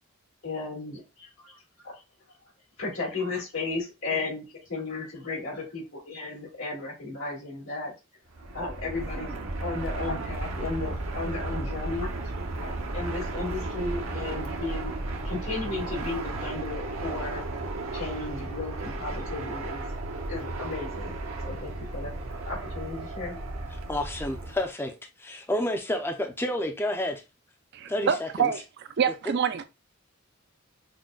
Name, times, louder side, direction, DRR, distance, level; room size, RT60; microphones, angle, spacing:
voice 1, 0.4-2.0 2.8-7.9 8.4-12.1 12.6-15.0 15.2-17.4 17.9-19.9 20.3-21.2 21.4-22.1 22.5-23.5, left 3 dB, 85° left, 2.2 m, -34 dB
Fixed-wing aircraft airplane, 8.3-24.7, right 2 dB, 75° right, 0.8 m, -34 dB
voice 2, 23.9-27.2 27.9-28.5, left 1 dB, 10° left, 0.5 m, -30 dB
voice 3, 27.7-28.6 29.0-29.6, right 7 dB, 55° right, 0.4 m, -26 dB
6.1 x 2.2 x 2.2 m
head